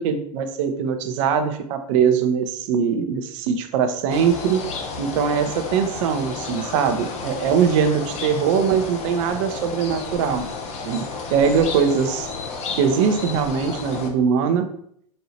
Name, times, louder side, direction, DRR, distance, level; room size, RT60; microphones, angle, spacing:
voice 1, 0.0-4.7 5.0-10.5 10.8-12.3 12.8-14.7, right 7 dB, 55° right, 7 dB, 0.7 m, -21 dB
sound 1, 4.1-14.1, left 4 dB, 35° left, 0.8 m, -32 dB
4.2 x 2.7 x 4.2 m, 0.67 s
hypercardioid pair, 100°, 20 cm